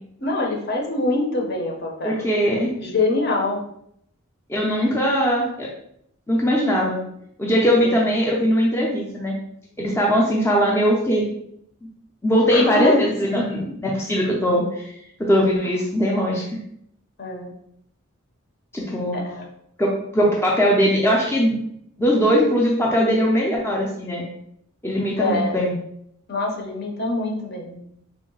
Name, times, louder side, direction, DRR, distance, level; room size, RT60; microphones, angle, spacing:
voice 1, 0.2-2.2 2.8-3.6 7.8-8.0 12.5-13.0 13.3-13.6 17.2-17.5 19.1-19.4 25.2-25.6 26.3-27.8, left 2 dB, 50° left, 0 dB, 0.7 m, -24 dB
voice 2, 2.0-2.7 4.5-5.7 6.3-7.0 7.4-9.4 9.8-11.3 12.2-14.9 15.2-16.4 18.7-19.2 19.8-21.5 22.0-24.2 24.8-25.7, equal, 10° left, -3 dB, 0.4 m, -20 dB
3.7 x 2.1 x 3.8 m, 0.72 s
head